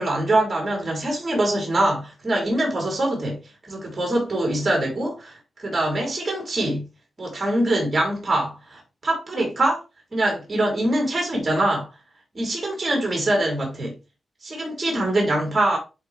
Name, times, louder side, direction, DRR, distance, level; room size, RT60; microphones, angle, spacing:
voice 1, 0.0-3.4 3.7-6.8 7.2-9.8 10.1-11.9 12.4-13.9 14.4-15.8, right 1 dB, 30° right, 3.9 m, -23 dB
10.0 x 4.4 x 3.4 m
wide cardioid pair, 115°, 0 cm